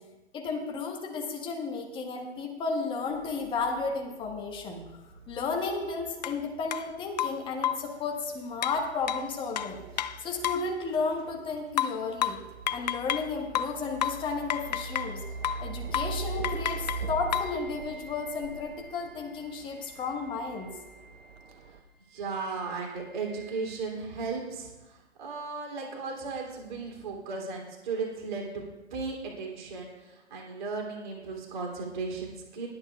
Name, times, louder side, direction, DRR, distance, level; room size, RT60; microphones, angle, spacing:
voice 1, 0.3-4.8 5.3-9.8 10.2-12.4 12.7-15.2 15.6-20.8, left 4 dB, 15° left, 2 dB, 1.5 m, -33 dB
sound 1, 3.1-21.8, right 4 dB, 60° right, 1.2 m, -43 dB
sound 2, 6.2-6.4 6.7-6.8 7.2-7.9 8.6-10.7 11.8-13.3 13.5-15.2 15.4-15.7 15.9-16.2 16.4-17.6, left 10 dB, 40° left, 0.4 m, -31 dB
sound 3, 14.6-23.8, right 2 dB, 85° left, 3.3 m, -53 dB
voice 2, 22.1-28.6 28.9-32.7, right 4 dB, 40° right, -1 dB, 3.1 m, -36 dB
21.5 x 8.6 x 2.4 m, 1.1 s
figure-of-eight pair, 130°, 35 cm